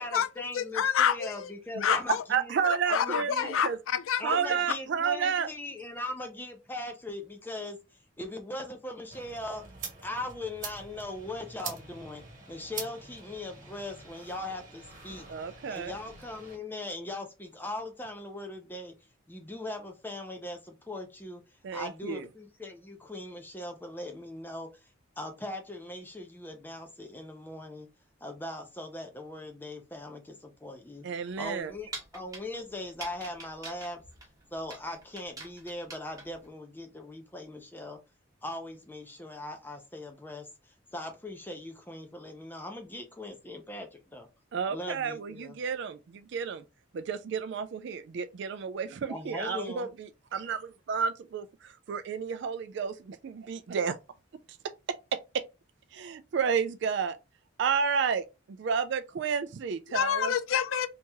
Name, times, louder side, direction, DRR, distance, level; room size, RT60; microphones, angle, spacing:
voice 1, 0.0-2.6 2.9-3.5 4.2-7.8 8.2-9.7 10.0-15.3 15.7-19.0 19.3-21.4 21.7-24.9 25.2-27.9 28.2-31.1 31.4-34.0 34.5-38.0 38.4-44.3 44.7-45.6 49.1-49.9, left 1 dB, 10° left, 0.5 m, -40 dB
voice 2, 0.5-1.5 1.8-2.2 2.9-4.4 59.9-60.9, left 8 dB, 80° left, 0.4 m, -28 dB
voice 3, 1.7-3.8 4.2-5.5 15.3-15.9 21.6-22.3 31.0-31.7 44.5-46.6 46.9-54.0 54.5-54.6 54.9-55.4 55.9-57.2 57.6-60.3, right 6 dB, 55° right, 0.3 m, -31 dB
sound 1, 9.1-16.6, right 5 dB, 40° right, 1.3 m, -45 dB
sound 2, 31.3-36.5, right 3 dB, 15° right, 0.9 m, -46 dB
2.9 x 2.8 x 3.5 m
head